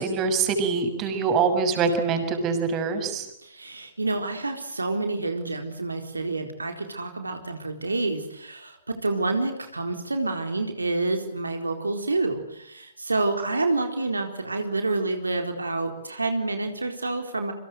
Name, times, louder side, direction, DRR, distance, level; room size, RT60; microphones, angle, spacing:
voice 1, 0.0-3.3, right 5 dB, 30° right, 7 dB, 6.6 m, -24 dB
voice 2, 3.4-17.5, right 3 dB, 85° right, 5 dB, 4.2 m, -28 dB
29.5 x 25.0 x 8.1 m, 0.78 s
figure-of-eight pair, 115°, 0 cm